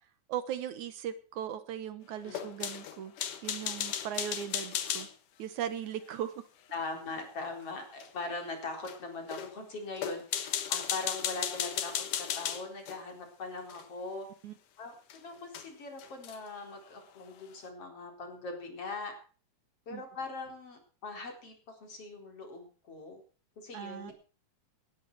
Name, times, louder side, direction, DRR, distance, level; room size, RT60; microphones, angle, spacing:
voice 1, 0.3-3.1 3.4-5.1 5.4-6.4 14.4-14.6 19.9-20.0 23.7-24.1, right 9 dB, 75° right, 12 dB, 2.5 m, -38 dB
sound 1, 2.3-5.1 8.0-8.1 8.8-9.0 9.3-9.5 10.0-13.0 13.7-13.8 15.1-15.2 15.5-15.7 16.0-16.5, left 10 dB, 85° left, 3.0 m, -35 dB
voice 2, 6.7-14.3 14.8-19.1 19.9-23.2 23.6-24.1, left 3 dB, 50° left, 3 dB, 5.0 m, -41 dB
19.0 x 12.0 x 4.7 m, 0.39 s
omnidirectional pair, 3.5 m